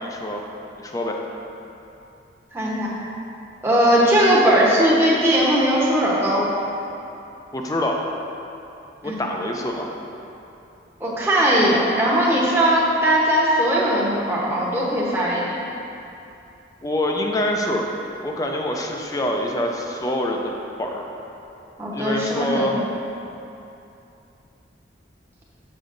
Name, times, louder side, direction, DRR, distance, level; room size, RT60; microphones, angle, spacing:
voice 1, 0.0-0.4 0.8-1.2 7.5-8.0 9.0-9.9 16.8-17.8 18.2-20.5 20.8-21.0 21.9-22.8, left 1 dB, 20° left, 1 dB, 0.4 m, -25 dB
voice 2, 2.5-2.9 3.6-6.5 9.0-9.2 11.0-15.6 21.8-22.8, right 1 dB, 15° right, -6 dB, 0.9 m, -19 dB
7.3 x 6.8 x 2.6 m, 2.8 s
head